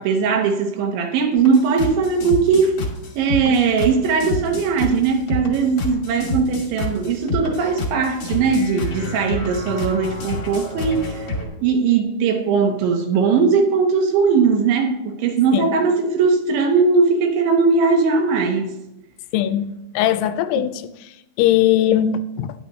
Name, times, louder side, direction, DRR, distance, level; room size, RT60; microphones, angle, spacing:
voice 1, 0.0-2.7 3.2-11.3 11.6-18.7 20.6-20.7, right 5 dB, 75° right, 3.2 m, -19 dB
sound 1, 1.4-11.5, left 2 dB, 45° left, 1.9 m, -27 dB
voice 2, 19.3-20.8 21.4-22.5, left 11 dB, 85° left, 3.1 m, -19 dB
12.0 x 10.5 x 3.1 m
omnidirectional pair, 5.9 m